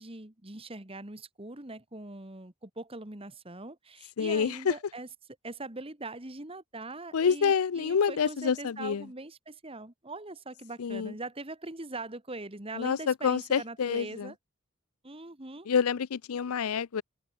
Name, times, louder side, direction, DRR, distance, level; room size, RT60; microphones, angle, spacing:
voice 1, 0.0-5.1 5.4-14.4 15.0-15.7, right 2 dB, 25° right, 2.0 m, -42 dB
voice 2, 4.2-4.7 7.1-9.1 10.8-11.1 12.8-14.3 15.7-17.0, left 6 dB, 90° left, 0.5 m, -27 dB
head